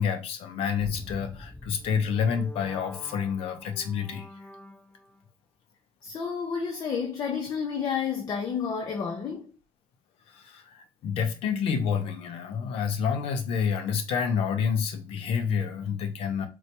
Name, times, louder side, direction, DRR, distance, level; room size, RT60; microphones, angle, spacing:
voice 1, 0.0-4.3 10.3-16.5, left 7 dB, 85° left, 0.7 m, -28 dB
sound 1, 0.8-5.2, left 1 dB, 15° left, 0.9 m, -45 dB
voice 2, 6.0-9.5, left 6 dB, 45° left, 0.7 m, -30 dB
4.3 x 2.2 x 2.8 m
cardioid pair, 120°, 10 cm